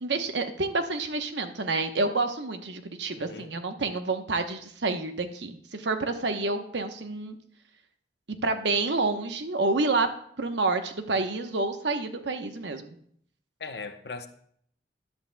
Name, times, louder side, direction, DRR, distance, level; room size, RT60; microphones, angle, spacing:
voice 1, 0.0-7.4 8.4-10.1 10.4-12.9, right 3 dB, 85° right, 1.0 m, -28 dB
voice 2, 3.1-3.5 13.6-14.3, left 4 dB, 65° left, 0.9 m, -39 dB
13.0 x 11.0 x 2.3 m
head